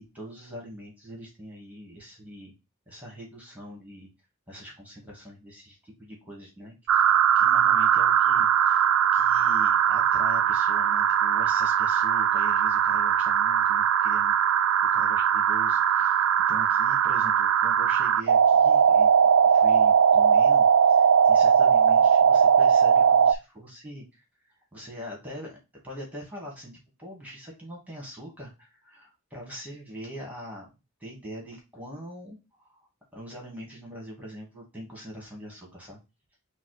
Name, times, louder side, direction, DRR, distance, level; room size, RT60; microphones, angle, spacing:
voice 1, 0.0-2.5 2.9-4.1 4.5-14.3 14.9-19.1 19.4-24.2 24.7-25.6 25.8-30.7 31.0-32.7 33.1-36.0, equal, 10° right, -2 dB, 1.5 m, -43 dB
sound 1, 6.9-23.3, right 8 dB, 85° right, 0.3 m, -20 dB
5.2 x 2.1 x 4.7 m, 0.26 s
head